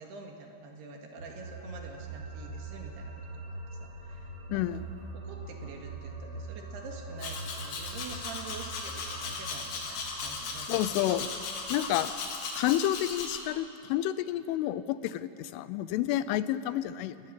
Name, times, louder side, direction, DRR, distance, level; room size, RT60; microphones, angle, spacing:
voice 1, 0.0-4.8 5.1-10.8, right 4 dB, 65° right, 2 dB, 3.7 m, -46 dB
sound 1, 1.2-12.0, right 3 dB, 30° right, 3.2 m, -43 dB
voice 2, 4.5-4.8 10.6-11.3 11.7-12.1 12.6-17.2, left 13 dB, 85° left, 15 dB, 3.2 m, -30 dB
Domestic sounds home sounds, 7.2-13.4, left 4 dB, 60° left, 4.3 m, -37 dB
28.5 x 19.0 x 7.5 m, 2.5 s
omnidirectional pair, 5.6 m